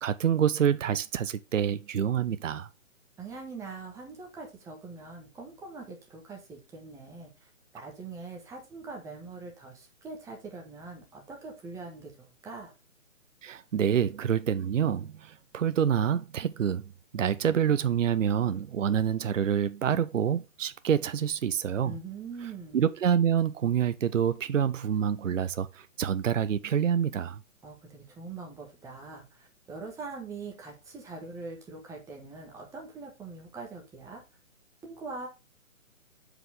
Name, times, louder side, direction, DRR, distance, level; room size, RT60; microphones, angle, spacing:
voice 1, 0.0-2.7 13.4-16.8 17.1-21.9 22.7-27.4, right 8 dB, 70° right, 0.7 m, -27 dB
voice 2, 3.2-12.7 21.8-22.8 27.6-34.2 34.8-35.3, right 4 dB, 10° right, 1.4 m, -43 dB
7.7 x 5.0 x 3.5 m
figure-of-eight pair, 140°, 40 cm